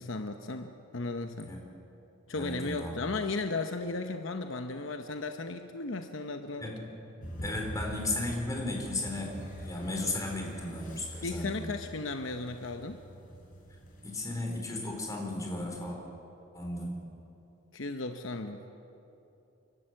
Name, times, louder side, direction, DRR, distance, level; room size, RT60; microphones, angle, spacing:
voice 1, 0.0-1.5 2.3-6.7 11.2-13.0 17.7-18.6, left 3 dB, 65° left, 6 dB, 0.9 m, -35 dB
voice 2, 2.3-3.1 6.6-6.9 7.4-11.6 14.0-16.0 16.5-17.0, left 2 dB, 15° left, 0 dB, 3.7 m, -35 dB
sound 1, 7.2-14.2, equal, 40° left, 4.1 m, -44 dB
30.0 x 12.0 x 7.8 m, 2.9 s
head